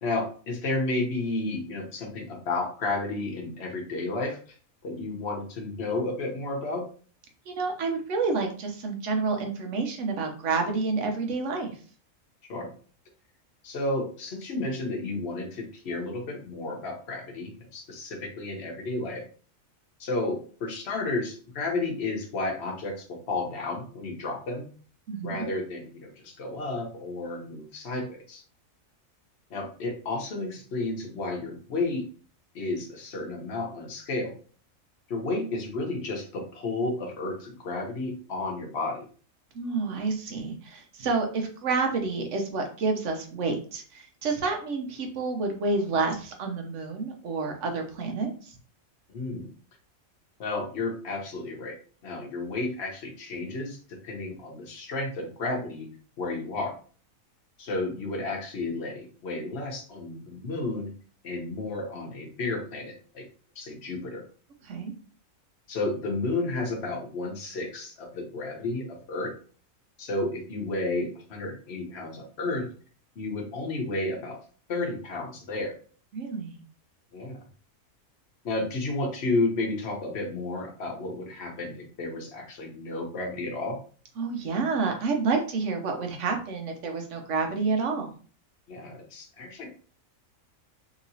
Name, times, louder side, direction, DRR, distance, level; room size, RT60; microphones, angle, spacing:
voice 1, 0.0-4.4 4.8-6.8 12.5-12.7 13.6-19.2 20.0-24.7 25.2-28.4 29.5-32.0 32.5-34.3 35.1-39.0 49.1-49.5 50.4-51.8 52.0-55.9 56.2-56.7 57.6-60.9 61.2-63.2 63.6-64.2 65.7-69.3 70.0-72.7 73.2-74.4 74.7-75.7 77.1-77.4 78.4-83.8 88.7-89.7, left 2 dB, 55° left, 1 dB, 1.0 m, -32 dB
voice 2, 7.5-11.7 25.1-25.5 39.5-48.5 64.6-64.9 76.1-76.6 84.2-88.1, right 4 dB, 65° right, 3 dB, 1.0 m, -29 dB
3.0 x 2.8 x 2.6 m, 0.41 s
omnidirectional pair, 1.4 m